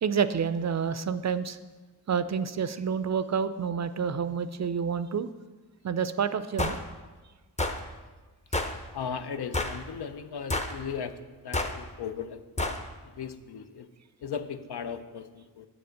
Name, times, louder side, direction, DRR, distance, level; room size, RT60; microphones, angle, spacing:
voice 1, 0.0-1.6 2.1-5.3 5.8-6.8, right 6 dB, 45° right, 13 dB, 0.4 m, -28 dB
sound 1, 6.6-6.8 7.6-7.8 8.5-8.8 9.5-9.8 10.5-10.8 11.5-11.8 12.6-12.8, left 2 dB, 15° left, 0.7 m, -29 dB
voice 2, 8.9-11.1 11.4-12.4 12.7-12.8 13.2-13.9 14.2-15.7, left 7 dB, 75° left, 10 dB, 0.7 m, -37 dB
7.4 x 6.9 x 6.4 m, 1.3 s
wide cardioid pair, 90°, 40 cm